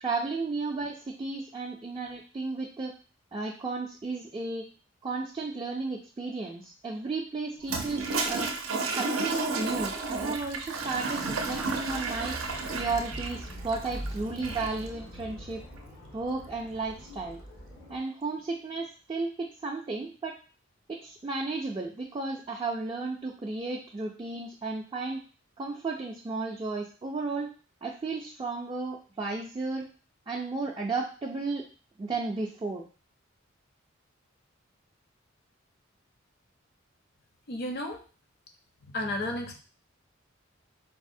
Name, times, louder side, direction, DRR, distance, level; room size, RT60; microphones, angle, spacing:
voice 1, 0.0-2.9 3.3-4.6 5.0-8.5 8.9-12.4 12.7-15.6 16.1-17.4 17.9-20.4 20.9-25.2 25.6-27.5 27.8-29.9 30.3-31.7 32.0-32.9, right 3 dB, 25° right, -1 dB, 0.3 m, -33 dB
Toilet flush, 7.6-14.9, right 3 dB, 85° right, 0.5 m, -32 dB
sound 1, 9.7-18.0, equal, 90° left, 1.5 m, -43 dB
voice 2, 37.5-38.0 38.9-39.5, left 1 dB, 50° left, 4 dB, 0.5 m, -32 dB
4.0 x 2.0 x 2.6 m, 0.37 s
head